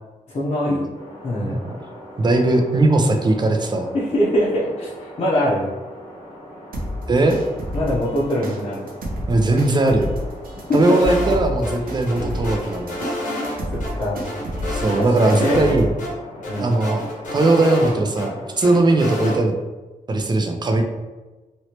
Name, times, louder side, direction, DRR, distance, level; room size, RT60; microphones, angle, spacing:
voice 1, 0.3-0.8 1.2-1.6 3.9-5.7 7.7-8.9 10.7-11.0 13.3-13.5 14.0-14.3 15.0-15.9 16.5-16.7, equal, 50° left, -9 dB, 0.7 m, -22 dB
sound 1, 0.9-19.4, equal, 25° left, 0.9 m, -41 dB
voice 2, 1.4-1.8 2.2-3.9 7.1-7.4 9.3-10.1 10.7-13.0 14.7-15.9 16.6-17.0 17.3-19.5 20.1-20.8, right 2 dB, 30° right, 4 dB, 0.4 m, -19 dB
sound 2, 6.7-15.9, equal, 85° right, 0.6 m, -30 dB
sound 3, 10.8-11.7 12.1-13.6 13.8-13.9 14.2-15.7 16.0-16.1 16.4-18.3 18.6-19.4, left 1 dB, 70° left, 1.1 m, -29 dB
3.0 x 2.9 x 2.9 m, 1.2 s
wide cardioid pair, 150°, 14 cm